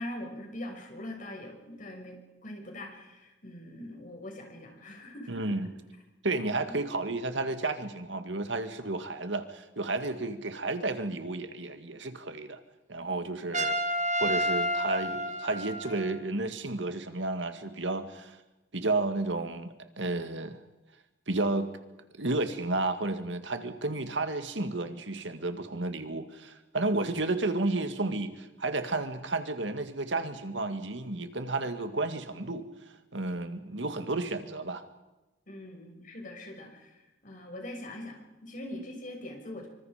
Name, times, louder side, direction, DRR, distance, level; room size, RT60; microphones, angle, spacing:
voice 1, 0.0-5.3 6.5-6.7 35.5-37.0 37.2-39.7, left 1 dB, 45° left, 2 dB, 6.4 m, -42 dB
voice 2, 5.3-5.7 6.2-12.6 12.9-13.8 14.2-18.4 18.7-20.6 21.3-21.7 22.2-32.7 33.1-34.8, right 2 dB, 75° right, 8 dB, 2.1 m, -32 dB
Trumpet, 13.5-16.2, equal, 40° right, 2.5 m, -30 dB
26.0 x 25.5 x 5.1 m, 1.0 s
head